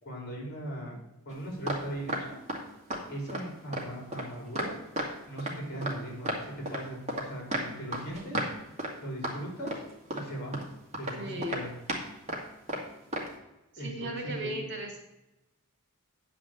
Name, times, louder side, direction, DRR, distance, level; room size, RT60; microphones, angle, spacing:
voice 1, 0.0-1.0 1.3-2.4 3.1-4.7 5.3-8.4 9.0-9.8 10.1-10.6 11.0-11.7 13.7-14.6, right 1 dB, 45° left, -1 dB, 3.8 m, -39 dB
sound 1, 1.3-1.8 2.1-2.6 2.9-3.0 3.3-3.4 3.7-5.1 5.4-6.0 6.2-7.3 7.5-8.5 8.8-8.9 9.2-9.3 9.7-10.3 10.5-10.6 10.9-11.2 11.4-12.0 12.3-12.4 12.7-12.8 13.1-13.3, right 1 dB, 30° right, 2.1 m, -33 dB
voice 2, 11.2-11.6 13.7-15.0, right 1 dB, 55° right, 2 dB, 2.4 m, -37 dB
9.9 x 5.0 x 7.5 m, 0.93 s
head